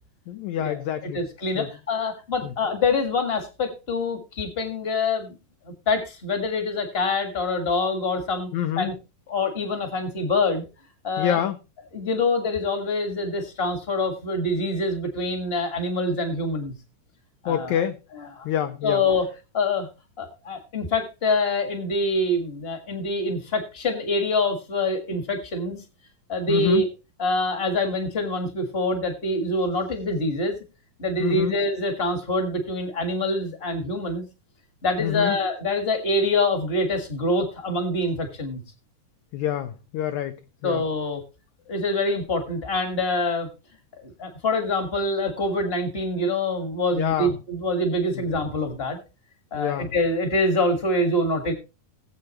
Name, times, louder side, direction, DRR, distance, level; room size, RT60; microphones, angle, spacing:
voice 1, 0.3-1.3 1.5-1.7 2.4-2.5 8.5-8.9 11.2-11.6 17.5-18.0 18.4-19.0 26.5-26.9 31.2-31.6 35.0-35.4 39.3-40.8 46.9-47.4 48.2-48.3 49.5-49.9, left 10 dB, 85° left, 10 dB, 1.6 m, -27 dB
voice 2, 1.1-5.3 5.6-8.5 8.8-8.9 9.3-10.7 11.0-11.4 11.9-16.8 17.4-17.8 18.4-18.5 18.8-19.2 19.5-19.9 20.2-25.8 26.3-26.9 27.2-30.6 31.0-34.2 34.8-38.6 40.6-41.2 41.7-43.5 44.0-49.0 49.5-51.5, left 2 dB, 35° left, 6 dB, 0.9 m, -25 dB
19.0 x 7.8 x 3.1 m, 0.29 s
omnidirectional pair, 4.2 m